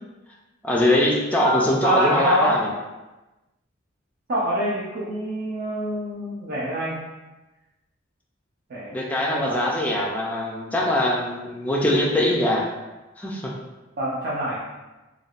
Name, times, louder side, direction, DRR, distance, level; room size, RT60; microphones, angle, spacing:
voice 1, 0.6-2.7 8.9-12.7 13.2-13.5, left 1 dB, 10° left, -2 dB, 0.3 m, -22 dB
voice 2, 1.4-2.6 4.3-7.0 8.7-9.0 9.3-9.7 14.0-14.6, equal, 50° right, -7 dB, 0.5 m, -26 dB
3.3 x 2.3 x 2.4 m, 1.1 s
head